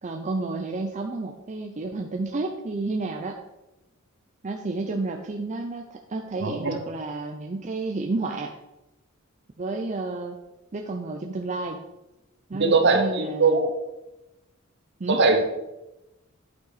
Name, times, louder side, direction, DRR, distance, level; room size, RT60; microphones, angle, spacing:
voice 1, 0.0-3.4 4.4-8.5 9.6-10.4 10.7-11.8 12.5-13.6 15.0-15.3, right 3 dB, 35° right, 3 dB, 0.5 m, -31 dB
voice 2, 6.4-6.8 12.6-13.7 15.1-15.4, right 3 dB, 55° right, 6 dB, 1.0 m, -21 dB
9.2 x 5.6 x 4.1 m, 0.98 s
head